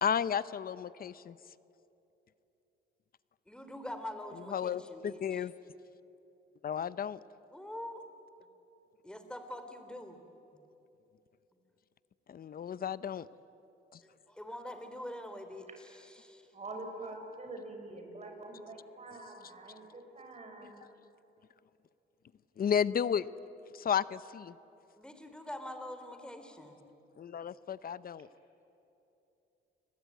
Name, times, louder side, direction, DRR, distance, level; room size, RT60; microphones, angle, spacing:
voice 1, 0.0-1.4 4.5-5.5 6.6-7.2 12.3-13.3 13.9-14.0 22.6-23.3 23.7-24.5 27.2-28.3, left 8 dB, 50° left, 17 dB, 0.8 m, -33 dB
voice 2, 3.5-5.4 7.5-8.0 9.0-10.2 14.0-16.5 25.0-26.8, left 1 dB, 5° left, 7 dB, 3.3 m, -44 dB
voice 3, 16.5-20.8, right 2 dB, 35° right, 3 dB, 6.6 m, -45 dB
29.0 x 21.0 x 9.4 m, 2.9 s
cardioid pair, 90°, 20 cm